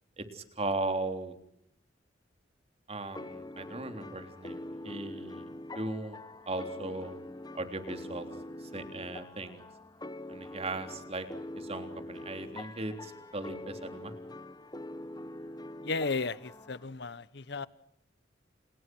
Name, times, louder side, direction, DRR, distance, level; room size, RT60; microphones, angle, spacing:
voice 1, 0.2-1.3 2.9-5.5 5.8-6.2 6.5-7.1 7.5-8.3 8.6-9.6 10.3-11.3 11.6-14.1, right 2 dB, 35° right, 3.5 m, -37 dB
sound 1, 3.1-16.9, left 1 dB, 20° left, 1.2 m, -44 dB
voice 2, 15.8-17.7, left 3 dB, 65° left, 1.2 m, -34 dB
30.0 x 30.0 x 6.3 m
head